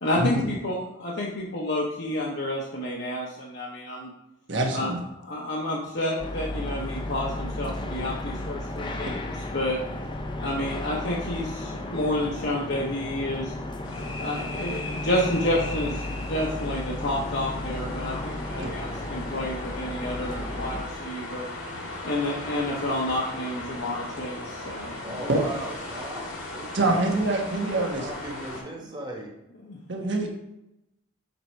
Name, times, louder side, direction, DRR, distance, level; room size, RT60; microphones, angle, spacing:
voice 1, 0.0-4.1 4.7-9.8 10.4-13.5 14.2-21.5 22.0-25.3 29.7-29.8, left 1 dB, 55° left, -4 dB, 1.0 m, -30 dB
voice 2, 4.5-5.0 18.6-18.7 25.3-25.4 26.7-28.1 29.9-30.3, right 2 dB, 60° right, 2 dB, 1.2 m, -25 dB
sound 1, 6.2-20.8, left 1 dB, 25° left, 0.6 m, -34 dB
Wind in Trees, 13.8-28.6, left 2 dB, 80° left, 2.0 m, -38 dB
voice 3, 25.0-27.0 27.9-29.3, right 1 dB, 20° right, -1 dB, 1.4 m, -37 dB
6.9 x 4.4 x 4.5 m, 0.88 s
head